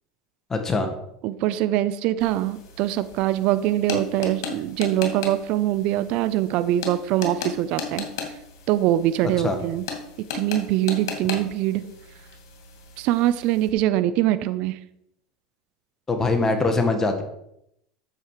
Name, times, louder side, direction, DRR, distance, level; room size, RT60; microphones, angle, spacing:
voice 1, 0.5-0.9 9.4-9.6 16.1-17.2, left 3 dB, 20° left, 6 dB, 1.5 m, -22 dB
voice 2, 1.2-8.1 8.7-9.8 10.3-11.9 13.0-14.8, right 13 dB, 60° right, 13 dB, 0.6 m, -23 dB
sound 1, 2.2-13.7, left 6 dB, 85° left, 2.3 m, -37 dB
9.7 x 7.5 x 4.8 m, 0.78 s
supercardioid pair, 110°, 2 cm